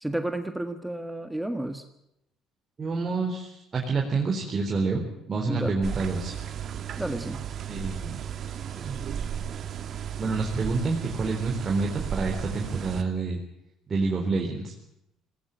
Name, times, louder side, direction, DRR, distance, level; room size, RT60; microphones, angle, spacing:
voice 1, 0.0-1.8 5.5-5.8 7.0-7.4, right 1 dB, 5° right, 8 dB, 1.6 m, -31 dB
voice 2, 2.8-6.3 7.7-8.2 8.8-9.0 10.2-13.4 13.9-14.7, right 3 dB, 35° right, 0 dB, 4.0 m, -28 dB
sound 1, 5.8-13.0, right 8 dB, 50° right, 2.1 m, -34 dB
19.5 x 18.5 x 9.1 m, 0.81 s
supercardioid pair, 90°, 0 cm